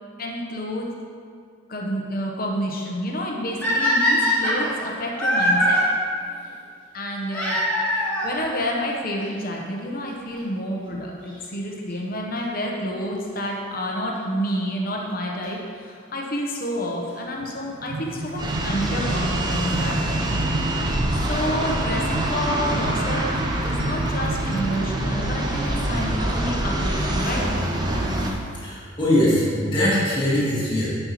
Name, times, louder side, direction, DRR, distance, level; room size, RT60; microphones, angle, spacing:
voice 1, 0.2-0.9 1.7-5.9 6.9-7.6 8.2-20.4 21.1-27.5, equal, 45° left, -1 dB, 0.9 m, -29 dB
sound 1, 3.6-5.8 7.3-8.4 9.3-9.4 10.1-10.2 10.4-10.5 12.4-12.6 15.4-15.5 16.6-16.7 18.1-18.2 18.5-18.6 18.8-18.9 19.1-19.2 19.4-19.5 19.6-19.7 19.9-20.0, equal, 10° left, 1.4 m, -22 dB
sound 2, 17.4-24.9, right 2 dB, 75° right, 0.5 m, -31 dB
sound 3, 18.4-28.3, right 1 dB, 20° right, 0.6 m, -25 dB
voice 2, 28.6-31.0, left 1 dB, 25° left, -8 dB, 1.9 m, -22 dB
9.5 x 5.5 x 3.1 m, 2.1 s
head